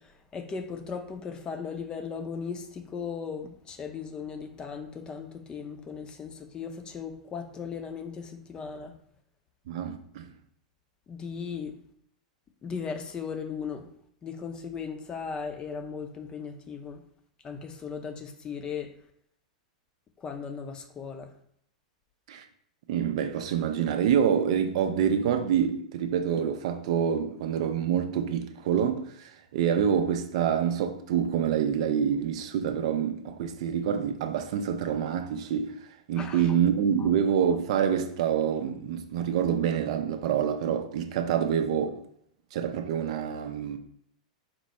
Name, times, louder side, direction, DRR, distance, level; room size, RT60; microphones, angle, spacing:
voice 1, 0.0-8.9 11.1-11.7 12.6-13.9 14.2-17.0 17.4-18.9 20.2-21.3 36.2-36.5 37.0-37.1, left 6 dB, 25° left, 0.5 m, -37 dB
voice 2, 9.7-10.3 22.3-22.4 22.9-29.2 29.5-35.7 36.1-41.9 42.5-43.8, right 8 dB, 60° right, 0.5 m, -26 dB
4.4 x 2.0 x 4.1 m
hypercardioid pair, 100°, 4 cm